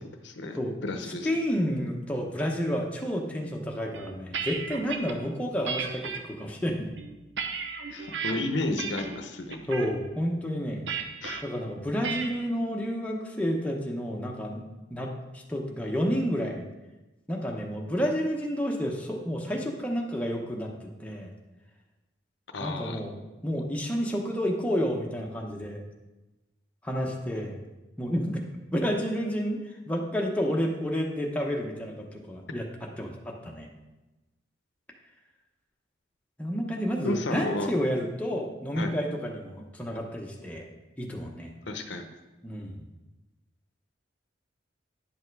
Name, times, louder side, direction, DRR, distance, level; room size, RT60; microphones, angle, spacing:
voice 1, 0.2-1.3 7.9-9.6 11.2-11.4 22.5-23.0 37.0-37.8 38.8-38.9 41.7-42.0, left 2 dB, 70° left, 5 dB, 0.8 m, -32 dB
voice 2, 1.0-6.9 9.7-10.9 11.4-14.6 14.9-16.6 17.3-21.3 22.6-25.8 26.8-27.6 28.0-28.4 28.7-29.6 29.9-32.7 33.0-33.7 36.4-40.6 41.0-41.5 42.4-42.9, equal, 5° left, 0 dB, 0.9 m, -30 dB
sound 1, 3.9-5.1 5.7-6.2 6.8-8.3 8.8-9.2 9.5-9.9 10.9-11.4 12.0-12.4, right 6 dB, 70° right, 0.8 m, -34 dB
10.0 x 5.6 x 4.7 m, 1.1 s
head